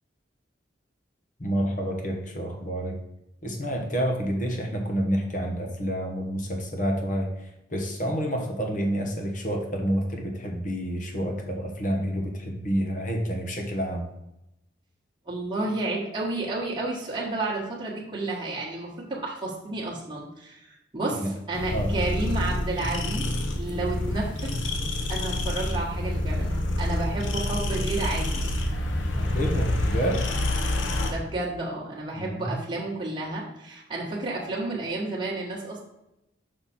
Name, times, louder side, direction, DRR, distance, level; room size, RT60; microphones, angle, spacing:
voice 1, 1.4-3.0 3.4-7.3 7.7-14.1 21.2-21.3 21.7-21.9 29.1-30.2 32.1-32.6, equal, 45° left, 2 dB, 1.3 m, -28 dB
voice 2, 15.3-23.3 23.6-24.5 25.1-28.5 31.1-35.8, right 2 dB, 25° right, -5 dB, 1.4 m, -31 dB
sound 1, 21.5-31.1, left 1 dB, 85° left, 1.0 m, -27 dB
5.9 x 5.6 x 4.3 m, 0.87 s
head